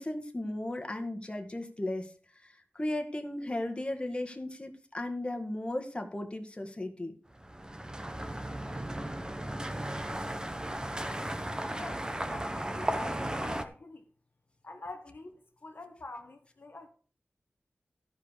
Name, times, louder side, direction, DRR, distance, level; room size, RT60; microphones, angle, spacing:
voice 1, 0.0-2.1 2.4-7.2, left 1 dB, 25° left, 1.8 m, -36 dB
sound 1, 7.4-13.6, right 1 dB, 20° right, 1.2 m, -35 dB
voice 2, 11.7-14.1 14.6-16.9, left 2 dB, 60° left, 1.4 m, -46 dB
13.5 x 5.3 x 6.6 m
wide cardioid pair, 75°, 4 cm